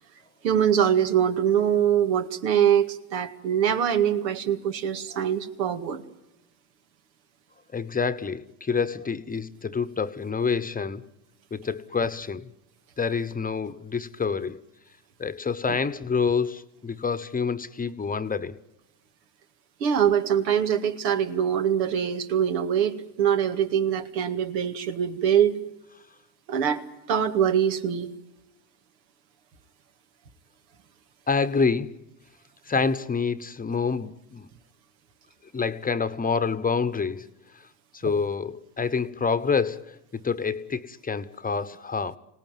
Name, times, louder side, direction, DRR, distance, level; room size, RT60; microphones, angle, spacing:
voice 1, 0.4-6.0 19.8-25.6 26.5-28.1 38.0-38.1, right 9 dB, 85° right, 2.2 m, -23 dB
voice 2, 7.7-11.1 11.5-12.5 13.0-14.6 15.2-18.6 31.3-32.0 32.7-34.5 35.5-37.3 37.5-37.6 37.9-40.0 40.2-42.2, left 5 dB, 15° left, 1.0 m, -27 dB
26.0 x 18.5 x 9.3 m
supercardioid pair, 95°, 50 cm